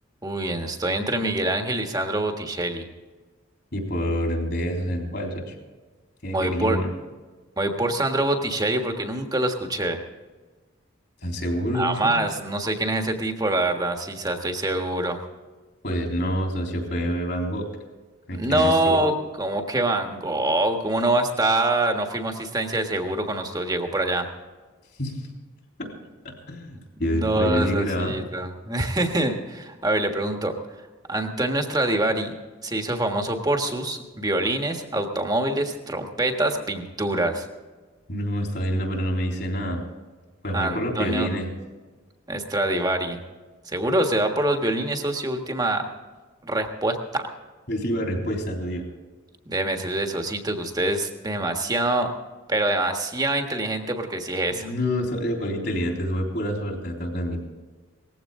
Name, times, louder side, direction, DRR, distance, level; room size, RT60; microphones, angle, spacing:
voice 1, 0.2-2.9 6.3-6.8 7.6-10.0 11.7-15.2 18.3-19.1 19.4-24.3 27.1-30.5 31.1-32.3 32.6-37.4 40.5-41.3 42.3-43.2 43.6-45.8 46.4-47.3 49.5-52.1 52.5-54.7, right 1 dB, 20° right, 4 dB, 1.5 m, -25 dB
voice 2, 3.7-5.5 6.2-6.9 11.2-12.2 15.8-17.7 18.3-19.0 25.0-25.3 25.8-25.9 26.2-28.1 38.1-39.8 40.4-41.5 47.7-48.9 54.5-57.4, equal, 55° left, 1 dB, 3.7 m, -27 dB
19.0 x 15.5 x 3.7 m, 1.3 s
head